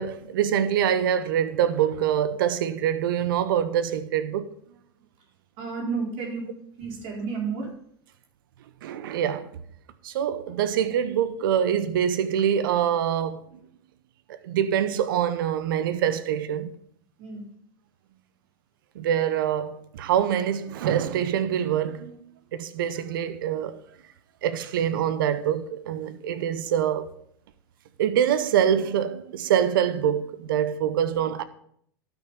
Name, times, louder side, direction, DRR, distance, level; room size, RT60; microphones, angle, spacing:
voice 1, 0.0-4.5 8.8-9.5 10.0-13.4 14.4-16.7 18.9-22.2 22.5-23.8 24.4-27.1 28.0-31.4, right 9 dB, 70° right, 0.8 m, -25 dB
voice 2, 5.6-6.5 6.8-7.7 17.2-17.4, right 5 dB, 55° right, 4.3 m, -31 dB
12.5 x 6.2 x 5.6 m
hypercardioid pair, 85°, 12 cm